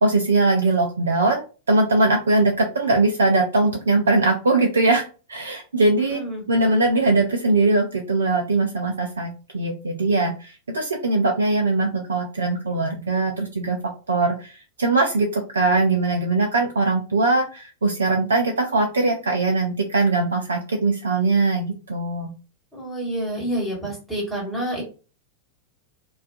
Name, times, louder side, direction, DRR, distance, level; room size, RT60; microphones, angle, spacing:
voice 1, 0.0-5.0 5.3-6.2 6.5-13.8 14.1-14.5 14.8-22.3, right 2 dB, 70° right, 2 dB, 0.3 m, -21 dB
voice 2, 6.0-6.4 22.7-24.8, right 1 dB, ahead, -4 dB, 1.3 m, -28 dB
2.4 x 2.2 x 2.4 m, 0.35 s
figure-of-eight pair, 90°, 0 cm